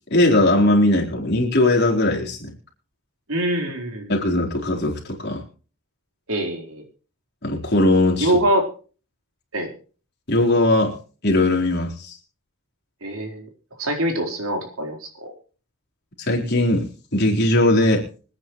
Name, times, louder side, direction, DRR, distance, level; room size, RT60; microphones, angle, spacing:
voice 1, 0.1-2.5 4.1-5.4 7.4-8.3 10.3-11.0 11.2-12.2 16.2-18.1, left 1 dB, 50° left, 0 dB, 4.2 m, -19 dB
voice 2, 3.3-4.1 6.3-6.8 8.2-8.7 9.5-9.7 13.0-13.5 13.8-15.3, right 1 dB, 80° right, 3 dB, 4.4 m, -24 dB
25.5 x 9.7 x 3.2 m, 0.38 s
head